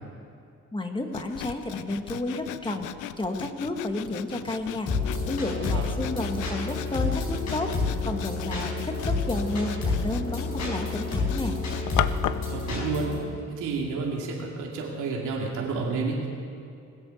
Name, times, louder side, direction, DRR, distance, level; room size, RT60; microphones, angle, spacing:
voice 1, 0.7-2.9 3.2-4.9 5.3-7.7 8.0-11.6, left 2 dB, 15° left, 5 dB, 1.6 m, -31 dB
Sawing, 1.1-12.5, left 13 dB, 85° left, 0.6 m, -37 dB
sound 1, 4.9-13.2, left 3 dB, 65° left, 4.8 m, -29 dB
voice 2, 12.5-13.1 13.5-16.3, right 4 dB, 85° right, -2 dB, 2.4 m, -30 dB
20.0 x 8.2 x 7.1 m, 2.5 s
cardioid pair, 90°, 30 cm